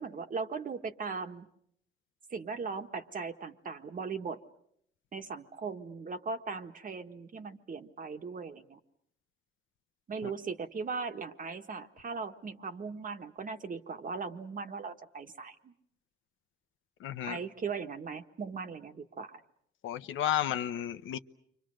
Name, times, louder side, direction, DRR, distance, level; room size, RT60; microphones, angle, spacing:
voice 1, 0.0-1.5 2.3-4.4 5.1-8.8 10.1-15.7 17.2-19.4, right 5 dB, 45° right, 1.6 m, -38 dB
voice 2, 17.0-17.4 19.8-21.2, left 11 dB, 80° left, 1.0 m, -32 dB
29.5 x 25.0 x 6.4 m
cardioid pair, 90°, 20 cm